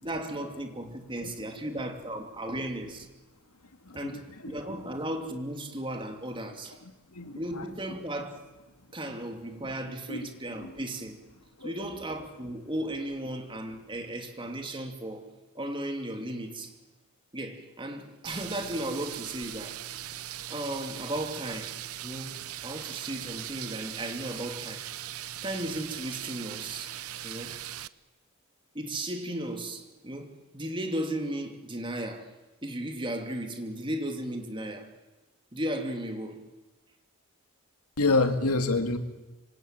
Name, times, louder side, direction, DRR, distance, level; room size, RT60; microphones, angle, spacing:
voice 1, 0.0-3.1 3.9-6.8 7.3-8.4 8.9-11.2 11.6-15.3 15.5-16.7 17.3-19.8 20.1-20.2 20.5-21.7 22.0-24.9 25.4-26.9 27.2-27.6 28.7-32.3 32.6-34.9 35.5-36.4, right 1 dB, 20° right, 2.8 m, -35 dB
voice 2, 3.8-4.6 7.1-7.6 10.1-10.2 10.6-10.7 11.6-11.7 38.0-39.0, left 3 dB, 85° left, 2.4 m, -28 dB
sound 1, 18.2-27.9, right 12 dB, 75° right, 0.8 m, -40 dB
26.0 x 25.0 x 9.0 m
head